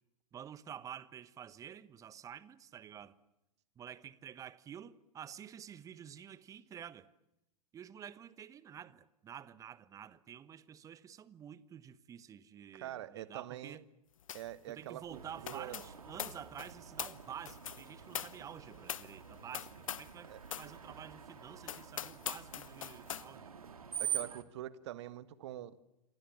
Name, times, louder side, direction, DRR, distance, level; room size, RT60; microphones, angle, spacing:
voice 1, 0.3-3.2 3.8-7.1 7.7-13.8 14.7-23.6, right 9 dB, 15° right, 1.1 m, -50 dB
voice 2, 12.7-13.8 14.3-15.8 20.3-20.4 24.0-25.8, right 13 dB, 45° right, 1.5 m, -45 dB
sound 1, 14.3-14.6 14.8-20.2 20.5-20.7 21.2-21.3 21.6-23.3, left 9 dB, 60° left, 1.1 m, -43 dB
Screech, 15.1-24.4, right 9 dB, 70° right, 2.2 m, -46 dB
28.0 x 26.0 x 7.4 m
figure-of-eight pair, 105°, 20 cm